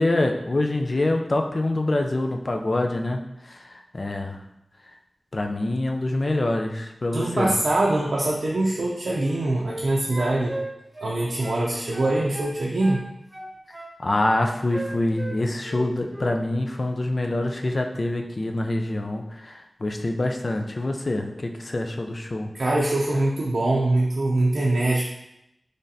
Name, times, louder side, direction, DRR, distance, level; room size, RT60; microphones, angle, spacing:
voice 1, 0.0-4.4 5.3-7.6 14.0-22.5, left 2 dB, 50° left, 3 dB, 0.4 m, -25 dB
voice 2, 7.1-10.6 11.0-13.0 22.5-25.0, right 2 dB, 80° right, -4 dB, 0.5 m, -23 dB
sound 1, 9.1-9.8 10.1-11.6 11.9-13.0 13.3-14.4 14.7-15.8 16.1-16.3, right 1 dB, 20° right, 0.6 m, -37 dB
4.0 x 3.3 x 2.6 m, 0.85 s
wide cardioid pair, 65°, 0 cm